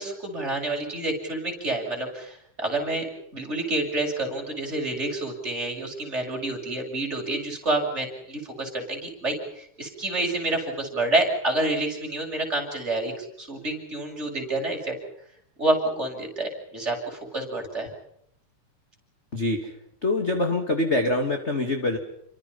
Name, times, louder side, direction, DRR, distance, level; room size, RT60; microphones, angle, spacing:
voice 1, 0.0-3.1 3.3-15.0 15.6-17.9, right 2 dB, 20° right, 1 dB, 7.4 m, -28 dB
voice 2, 19.3-19.7 20.0-22.0, left 2 dB, 25° left, 5 dB, 2.5 m, -24 dB
30.0 x 25.5 x 5.7 m, 0.72 s
omnidirectional pair, 3.6 m